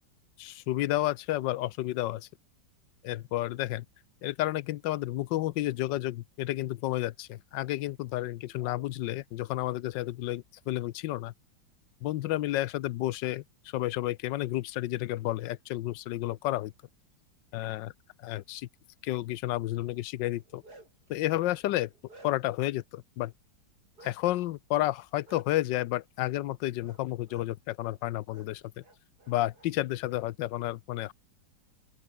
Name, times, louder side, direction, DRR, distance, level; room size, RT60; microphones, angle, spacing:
voice 1, 0.4-2.3 3.0-3.8 4.2-11.3 12.0-13.4 13.7-16.7 17.5-17.9 18.2-18.7 19.0-20.6 21.1-21.9 22.2-23.3 24.0-28.6 29.3-31.1, left 15 dB, 80° left, 1.3 m, -31 dB
Bark, 20.3-21.1 21.6-22.6 24.0-24.2 25.3-25.4 26.8-27.0 27.3-27.5 28.3-28.5 28.8-29.7, right 2 dB, 55° right, 7.7 m, -54 dB
open air
omnidirectional pair, 2.0 m